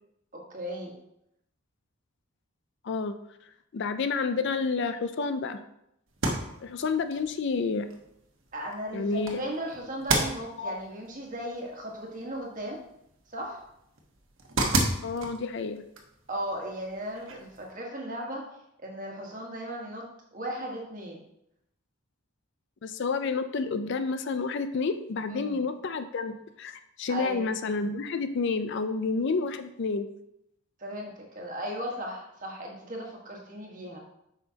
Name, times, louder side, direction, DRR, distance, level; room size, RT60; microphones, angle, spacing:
voice 1, 0.3-1.0 8.5-12.8 13.3-13.6 16.3-18.4 18.8-20.0 20.3-21.2 25.3-25.6 27.1-27.4 30.8-34.0, equal, 35° right, -1 dB, 1.5 m, -36 dB
voice 2, 3.7-5.6 6.6-7.9 8.9-9.4 10.6-10.8 15.0-15.8 22.8-30.1, left 4 dB, 55° left, 9 dB, 0.4 m, -29 dB
sound 1, 6.1-17.7, right 2 dB, 60° right, 1.1 m, -35 dB
8.1 x 5.6 x 2.9 m, 0.80 s
head